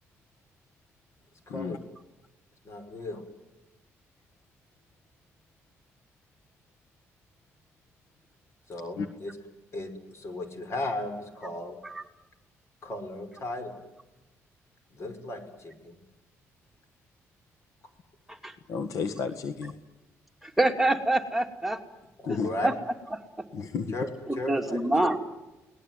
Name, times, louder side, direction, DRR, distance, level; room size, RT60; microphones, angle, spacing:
voice 1, 1.5-1.8 2.6-3.2 8.7-9.4 9.7-11.8 12.8-13.7 14.9-16.0 22.2-22.8 23.9-24.1 24.3-25.2, left 1 dB, 55° left, 9 dB, 5.9 m, -36 dB
voice 2, 18.7-19.7 22.2-22.5 23.5-23.9, left 5 dB, 75° left, 9 dB, 1.7 m, -31 dB
voice 3, 20.4-21.8 22.3-22.4 22.6-22.7 24.3-25.2, right 2 dB, 5° right, 3 dB, 2.7 m, -26 dB
29.0 x 19.5 x 9.3 m, 1.1 s
cardioid pair, 75°, 6 cm